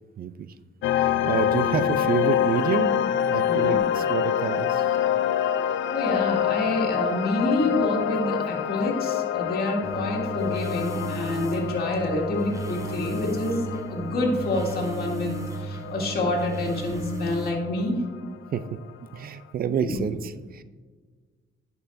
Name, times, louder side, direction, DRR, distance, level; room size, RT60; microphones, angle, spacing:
voice 1, 0.2-0.5 1.0-3.0 3.3-4.8 18.5-18.6 19.1-20.6, right 7 dB, 50° right, 13 dB, 0.4 m, -28 dB
sound 1, 0.8-17.8, left 10 dB, 75° left, 0.4 m, -27 dB
voice 2, 3.5-3.8 5.9-17.9 19.8-20.0, left 2 dB, 50° left, -2 dB, 2.1 m, -27 dB
sound 2, 9.8-17.5, right 5 dB, 15° right, 0.8 m, -35 dB
10.5 x 5.6 x 2.6 m, 1.4 s
cardioid pair, 90°, 20 cm